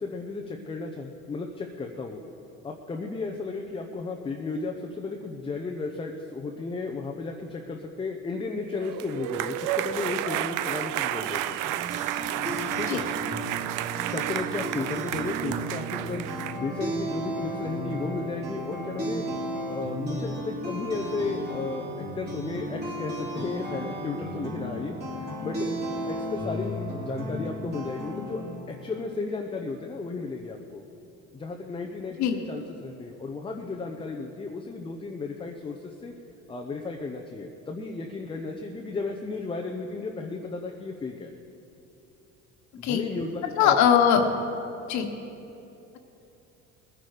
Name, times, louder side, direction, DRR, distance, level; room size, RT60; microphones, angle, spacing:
voice 1, 0.0-2.2 2.6-11.6 12.8-13.1 14.0-16.2 16.6-19.2 19.7-25.7 26.1-28.4 28.7-30.8 31.3-36.1 36.5-41.3 42.7-43.8, left 3 dB, 15° left, 2 dB, 0.7 m, -34 dB
sound 1, 8.7-16.6, right 13 dB, 70° right, 0.6 m, -31 dB
Guitar chords, 11.6-28.5, right 1 dB, 30° right, 3.4 m, -34 dB
voice 2, 43.5-44.2 44.9-45.1, left 8 dB, 60° left, 5 dB, 1.4 m, -20 dB
20.5 x 10.5 x 5.0 m, 2.9 s
cardioid pair, 135°, 32 cm